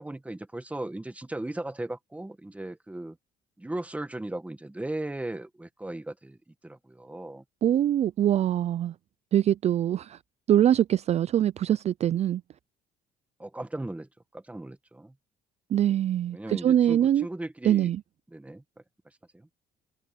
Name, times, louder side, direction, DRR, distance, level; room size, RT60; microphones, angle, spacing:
voice 1, 0.0-3.2 3.6-7.4 13.4-14.1 14.3-15.1 16.3-18.0 18.3-18.6 19.3-19.5, right 1 dB, 10° right, 1.4 m, -37 dB
voice 2, 7.6-8.9 9.3-10.2 10.5-12.4 15.7-17.3 17.6-18.0, right 11 dB, 40° right, 0.4 m, -23 dB
cardioid pair, 110°, 17 cm